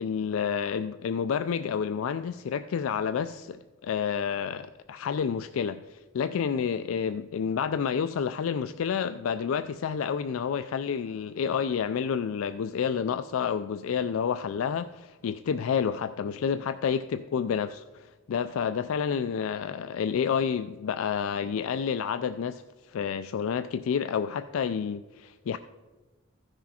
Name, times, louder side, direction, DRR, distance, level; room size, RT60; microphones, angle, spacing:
voice 1, 0.0-22.6 22.9-25.6, left 7 dB, 90° left, 11 dB, 0.4 m, -29 dB
15.0 x 6.3 x 4.2 m, 1.2 s
head